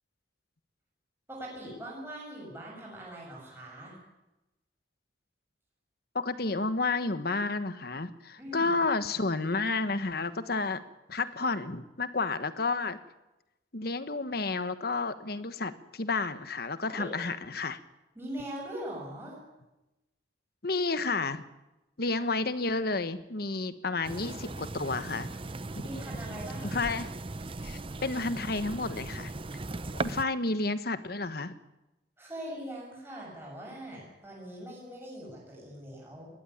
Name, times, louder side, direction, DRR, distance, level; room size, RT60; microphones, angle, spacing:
voice 1, 1.3-3.9 8.4-8.7 16.9-17.1 18.2-19.3 25.8-27.0 29.8-30.2 32.2-36.3, right 1 dB, 15° right, -4 dB, 7.4 m, -42 dB
voice 2, 6.1-10.8 11.1-13.0 13.7-17.8 20.6-21.4 22.0-25.3 25.7-25.8 26.7-27.1 27.6-29.3 30.0-31.5, left 3 dB, 55° left, 12 dB, 1.3 m, -31 dB
sound 1, 24.0-30.2, right 2 dB, 30° right, 0.7 m, -38 dB
20.5 x 15.0 x 10.0 m, 0.99 s
head